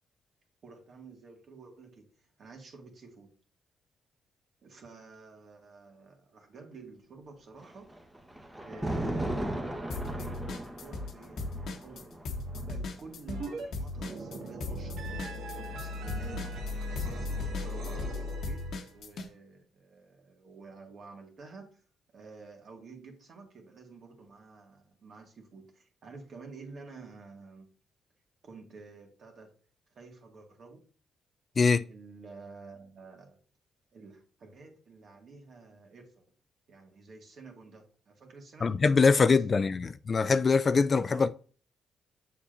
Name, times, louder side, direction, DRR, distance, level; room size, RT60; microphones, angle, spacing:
voice 1, 0.6-3.4 4.6-7.9 8.6-10.5 10.8-21.8 22.1-27.7 28.4-29.5 29.9-30.9 31.9-33.4 33.9-36.2 36.7-38.8 39.1-39.9 41.1-41.3, right 4 dB, 55° right, 1.9 m, -50 dB
Thunder, 7.6-14.8 15.8-17.6, right 1 dB, 15° right, 1.1 m, -38 dB
sound 1, 9.9-11.1 11.4-19.3, left 2 dB, 70° left, 1.1 m, -37 dB
sound 2, 13.3-13.7 13.9-18.9, left 1 dB, 85° right, 1.6 m, -38 dB
voice 2, 38.6-41.3, left 4 dB, 40° left, 0.3 m, -23 dB
7.1 x 7.0 x 2.6 m
cardioid pair, 90°, 0 cm